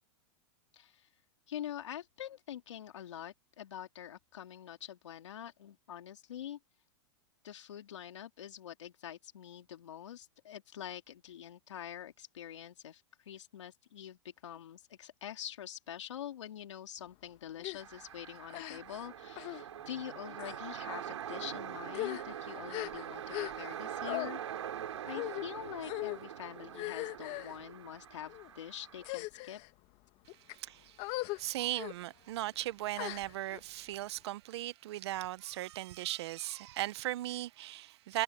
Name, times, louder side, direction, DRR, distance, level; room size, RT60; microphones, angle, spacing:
voice 1, 0.7-1.1 1.5-6.6 7.4-24.4 25.0-29.6, left 10 dB, 85° left, 3.3 m, -45 dB
sound 1, 17.6-17.8 18.5-19.0 19.4-19.6 20.3-20.6 21.3-21.5 21.9-23.8 24.0-24.3 25.1-25.5 25.8-26.2 26.7-27.6 28.3-28.5 29.0-29.7 30.3-30.5 31.0-31.4 31.7-31.9 33.0-33.6, left 21 dB, 45° left, 1.8 m, -39 dB
sound 2, 17.8-29.2, right 10 dB, 85° right, 6.2 m, -44 dB
voice 2, 30.5-38.2, right 15 dB, 65° right, 0.9 m, -38 dB
hypercardioid pair, 130°, 15 cm